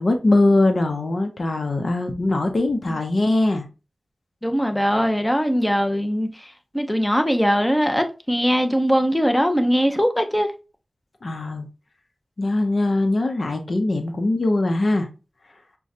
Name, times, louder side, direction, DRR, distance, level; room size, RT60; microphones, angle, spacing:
voice 1, 0.0-3.7 11.2-11.7 12.4-15.1, left 2 dB, 65° left, 0.7 m, -21 dB
voice 2, 4.4-6.5 6.7-10.5, equal, 10° left, 0.7 m, -21 dB
6.1 x 2.2 x 2.7 m
cardioid pair, 45°, 0 cm